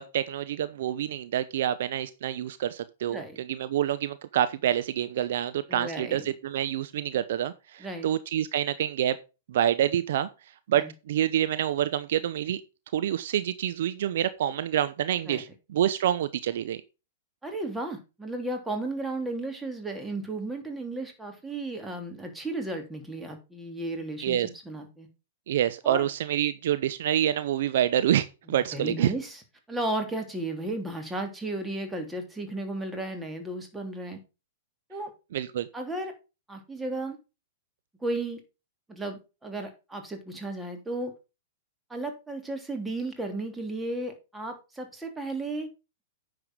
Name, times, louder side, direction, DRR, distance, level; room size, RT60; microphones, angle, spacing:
voice 1, 0.0-9.2 9.5-10.3 10.7-12.6 12.9-16.8 24.2-24.5 25.5-29.1 35.3-35.7, right 11 dB, 60° right, 0.8 m, -27 dB
voice 2, 3.1-3.4 5.7-6.3 7.8-8.1 10.8-10.9 15.3-15.4 17.4-25.1 25.8-26.1 28.5-29.4 29.7-34.2 34.9-35.1 35.7-36.1 36.5-37.2 38.0-38.4 38.9-41.1 41.9-45.7, right 2 dB, 10° right, 3.1 m, -34 dB
9.9 x 6.9 x 3.8 m
hypercardioid pair, 110°, 0 cm